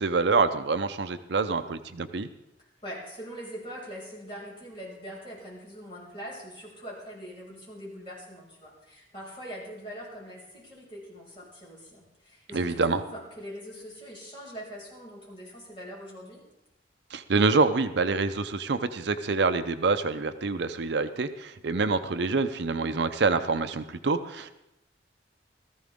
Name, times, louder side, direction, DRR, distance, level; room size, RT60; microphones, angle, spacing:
voice 1, 0.0-2.3 12.5-13.0 17.1-24.5, right 4 dB, 65° right, 10 dB, 0.6 m, -26 dB
voice 2, 2.8-16.4, equal, 30° left, -5 dB, 5.9 m, -42 dB
16.5 x 14.0 x 3.6 m, 0.88 s
head